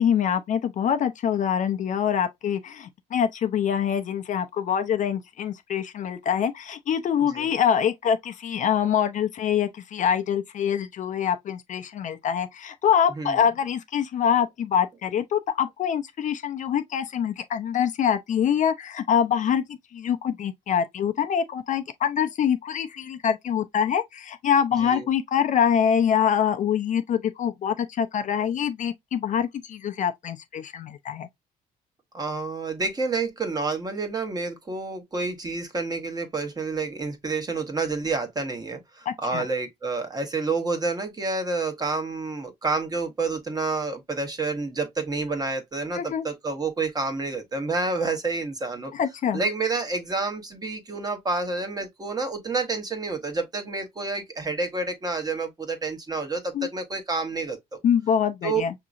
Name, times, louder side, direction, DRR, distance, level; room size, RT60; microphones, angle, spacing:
voice 1, 0.0-31.3 39.1-39.4 45.9-46.3 48.9-49.4 56.5-56.7 57.8-58.7, left 8 dB, 50° left, 0.6 m, -25 dB
voice 2, 32.1-48.9 49.3-57.8 58.4-58.6, right 3 dB, 25° right, 1.1 m, -29 dB
5.9 x 2.8 x 2.5 m
cardioid pair, 110°, 17 cm